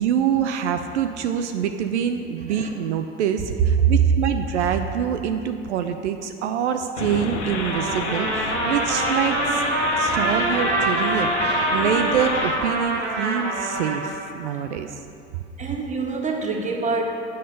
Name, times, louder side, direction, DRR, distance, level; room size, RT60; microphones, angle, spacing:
voice 1, 0.0-9.6 10.0-15.0, right 8 dB, 80° right, 7 dB, 0.5 m, -25 dB
sound 1, 6.9-12.5, left 4 dB, 90° left, 0.8 m, -30 dB
Trumpet, 7.6-14.1, right 1 dB, 45° right, 1.7 m, -24 dB
voice 2, 15.6-17.0, right 3 dB, 20° right, 1 dB, 1.4 m, -27 dB
7.8 x 7.4 x 5.2 m, 2.6 s
hypercardioid pair, 65°, 34 cm